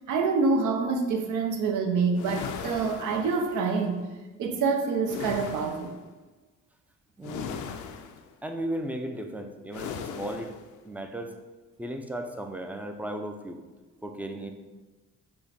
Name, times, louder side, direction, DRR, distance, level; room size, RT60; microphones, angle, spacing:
voice 1, 0.1-4.0 4.4-6.0, right 4 dB, 80° right, 4 dB, 0.7 m, -26 dB
sound 1, 2.1-3.8 5.1-6.0 7.2-8.3 9.7-10.7, left 7 dB, 80° left, 0.5 m, -38 dB
voice 2, 7.2-7.5 8.4-10.5 10.8-11.3 11.8-13.6 14.0-14.5, right 1 dB, 5° right, 5 dB, 0.4 m, -35 dB
5.5 x 2.2 x 4.1 m, 1.2 s
cardioid pair, 90°, 30 cm